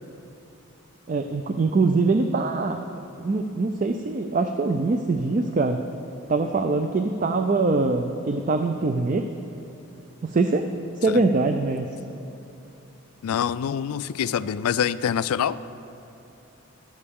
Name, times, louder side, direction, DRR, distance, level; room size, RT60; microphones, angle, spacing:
voice 1, 1.1-2.8 3.2-5.8 6.3-9.3 10.2-10.6 11.0-11.9, right 3 dB, 35° right, 6 dB, 0.4 m, -23 dB
voice 2, 13.2-15.6, left 8 dB, 85° left, 16 dB, 0.3 m, -25 dB
15.0 x 11.5 x 3.6 m, 2.8 s
head